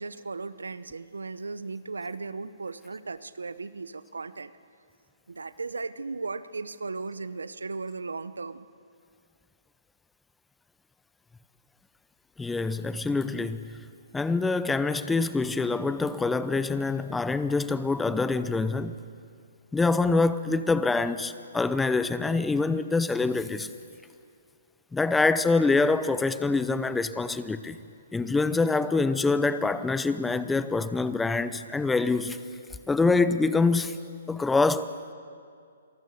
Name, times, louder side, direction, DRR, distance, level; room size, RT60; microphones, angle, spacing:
voice 1, 0.0-4.5 5.3-8.7, right 4 dB, 85° right, 0.8 m, -36 dB
voice 2, 12.4-13.8 14.1-18.9 19.7-23.7 24.9-27.8 28.1-32.4 32.9-34.0 34.3-34.9, left 3 dB, 5° left, 0.7 m, -25 dB
26.5 x 19.0 x 6.6 m
hypercardioid pair, 135°, 0 cm